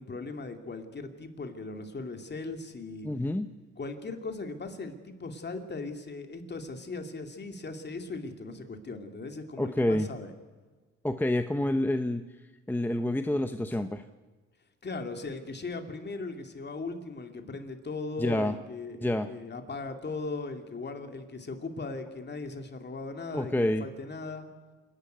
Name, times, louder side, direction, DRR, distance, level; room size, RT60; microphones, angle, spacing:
voice 1, 0.0-3.1 3.8-10.3 14.8-24.5, left 3 dB, 35° left, 5 dB, 2.6 m, -38 dB
voice 2, 3.0-3.5 9.6-10.1 11.0-12.2 12.7-14.0 18.2-18.6 19.0-19.3 23.3-23.9, left 1 dB, 5° left, 8 dB, 0.8 m, -28 dB
27.5 x 11.5 x 9.3 m, 1.3 s
cardioid pair, 90°, 30 cm